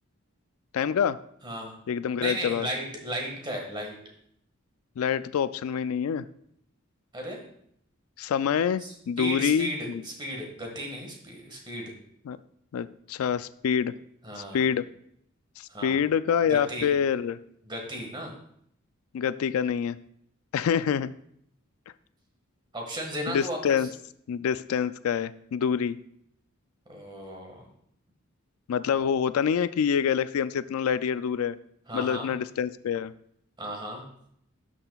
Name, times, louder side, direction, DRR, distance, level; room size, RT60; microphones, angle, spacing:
voice 1, 0.7-1.2 1.9-2.7 5.0-6.3 8.2-10.0 12.3-12.4 12.7-13.9 14.4-14.9 15.6-17.4 19.1-20.0 20.5-21.1 23.3-23.9 24.3-26.0 28.7-31.6 31.9-33.1, left 7 dB, 90° left, 15 dB, 0.3 m, -26 dB
voice 2, 1.4-1.7 2.2-4.0 7.1-7.4 8.8-11.9 14.2-14.7 15.7-16.0 16.5-16.9 17.6-18.3 22.7-23.9 26.9-27.7 31.9-32.3 33.6-34.1, equal, 20° right, 1 dB, 1.7 m, -35 dB
12.0 x 5.8 x 2.3 m, 0.70 s
head